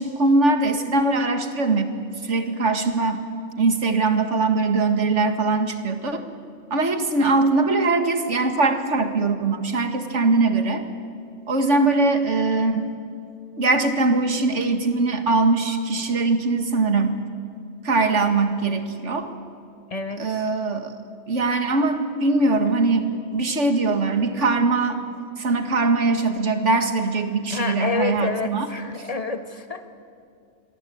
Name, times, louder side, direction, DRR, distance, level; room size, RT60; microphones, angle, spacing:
voice 1, 0.0-1.9 2.2-3.2 3.6-6.2 6.7-10.8 11.5-12.9 13.6-17.2 17.8-19.3 20.2-20.9 21.3-25.0 25.4-28.7, right 3 dB, 60° right, 7 dB, 2.2 m, -21 dB
voice 2, 19.9-20.4 27.5-29.9, left 4 dB, 25° left, 8 dB, 1.6 m, -28 dB
28.0 x 22.5 x 8.7 m, 2.5 s
omnidirectional pair, 1.4 m